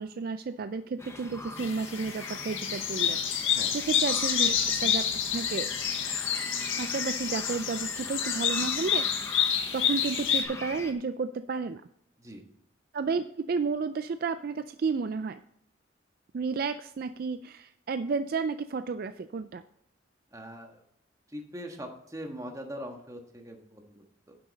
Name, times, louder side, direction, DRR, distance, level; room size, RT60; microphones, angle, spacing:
voice 1, 0.0-3.2 3.7-5.7 6.8-9.3 9.7-11.8 12.9-15.4 16.3-19.6, right 4 dB, 50° right, 11 dB, 0.3 m, -32 dB
sound 1, 1.0-10.9, left 2 dB, 15° left, 1.0 m, -41 dB
sound 2, 1.6-10.4, left 8 dB, 80° left, 1.4 m, -29 dB
voice 2, 20.3-20.8 21.3-24.4, equal, 15° right, 3 dB, 1.4 m, -42 dB
10.0 x 7.7 x 4.1 m, 0.73 s
head